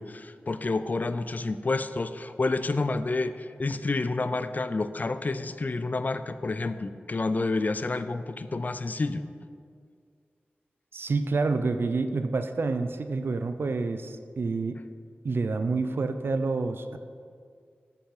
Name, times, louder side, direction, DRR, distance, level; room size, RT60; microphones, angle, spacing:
voice 1, 0.0-9.2, left 3 dB, 45° left, 11 dB, 0.4 m, -29 dB
voice 2, 10.9-14.8 15.2-17.0, right 3 dB, 70° right, 9 dB, 0.5 m, -28 dB
8.1 x 6.9 x 4.8 m, 2.2 s
wide cardioid pair, 70°, 4 cm